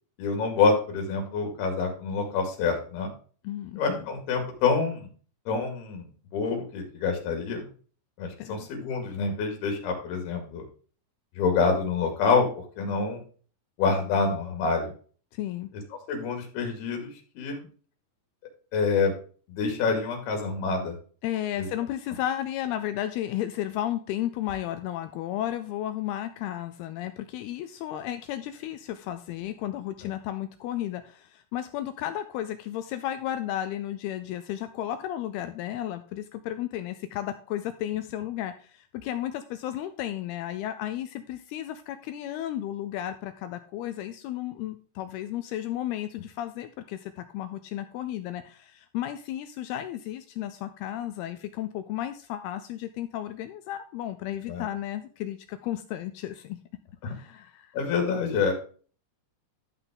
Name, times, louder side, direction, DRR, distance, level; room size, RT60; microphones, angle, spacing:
voice 1, 0.2-3.1 3.8-5.1 5.5-7.7 8.2-10.6 11.4-12.5 12.8-13.2 13.8-14.9 16.1-17.7 18.7-19.1 19.5-20.9 21.6-21.7 54.5-54.7 57.0-57.1 57.7-58.5, left 4 dB, 65° left, 3 dB, 4.1 m, -27 dB
voice 2, 3.4-4.1 8.4-8.5 15.3-15.7 21.2-56.6 57.1-57.8, left 12 dB, 85° left, 10 dB, 2.3 m, -33 dB
12.5 x 5.7 x 3.7 m, 0.40 s
omnidirectional pair, 5.0 m